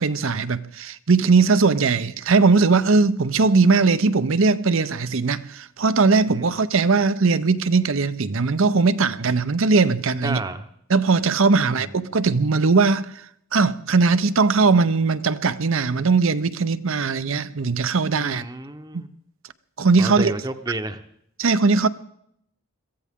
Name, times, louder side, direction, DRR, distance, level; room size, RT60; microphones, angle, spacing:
voice 1, 0.0-10.4 10.9-13.2 13.5-18.4 18.9-19.0 19.8-20.3 21.4-21.9, right 4 dB, 70° right, 0.7 m, -19 dB
voice 2, 10.2-10.7 11.6-11.9 18.2-19.1 20.0-21.0, right 2 dB, 20° right, 0.8 m, -31 dB
22.5 x 14.5 x 3.7 m
head